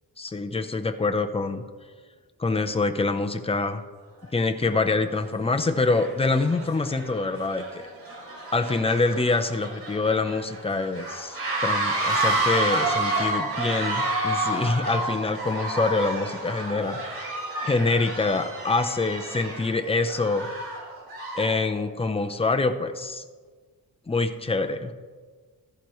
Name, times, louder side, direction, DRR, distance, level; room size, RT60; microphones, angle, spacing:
voice 1, 0.2-1.6 2.4-3.8 4.3-7.8 8.5-17.0 17.6-20.5 21.3-23.2 24.1-24.9, left 3 dB, 15° left, 7 dB, 0.7 m, -25 dB
sound 1, 4.2-4.3 5.0-5.3 5.6-21.6, right 2 dB, 70° right, 3.4 m, -30 dB
14.5 x 11.5 x 3.1 m, 1.5 s
wide cardioid pair, 130°, 38 cm